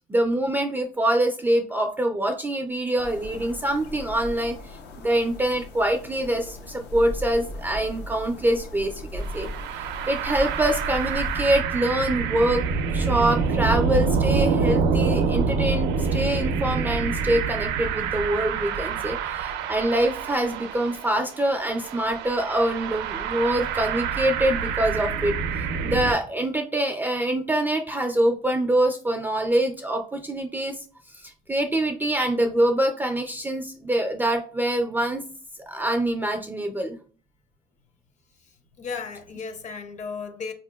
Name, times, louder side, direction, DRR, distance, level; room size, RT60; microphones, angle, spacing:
voice 1, 0.0-4.8 5.0-9.5 10.1-12.6 12.9-25.4 25.8-30.8 31.2-35.2 35.7-37.0, right 1 dB, 10° right, 0.3 m, -25 dB
sound 1, 3.0-11.6, left 1 dB, 85° left, 0.6 m, -37 dB
sound 2, 9.2-26.1, right 5 dB, 90° right, 0.4 m, -26 dB
voice 2, 38.4-40.5, left 5 dB, 45° left, 0.7 m, -35 dB
4.2 x 2.8 x 2.2 m
cardioid pair, 110°, 17 cm